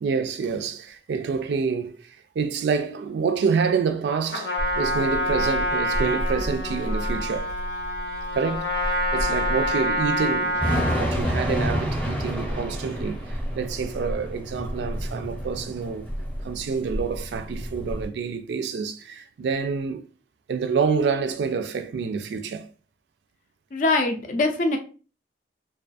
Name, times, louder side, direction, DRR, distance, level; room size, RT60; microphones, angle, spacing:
voice 1, 0.0-7.5 8.3-10.6 11.0-16.1 16.4-20.1 20.5-22.7, right 5 dB, 75° right, 0.3 m, -27 dB
Trumpet, 4.3-11.1, equal, 85° left, 0.8 m, -27 dB
Thunder / Rain, 4.6-18.1, equal, 10° left, 0.7 m, -29 dB
voice 2, 23.7-24.8, left 2 dB, 45° left, 0.4 m, -22 dB
2.4 x 2.3 x 2.4 m
head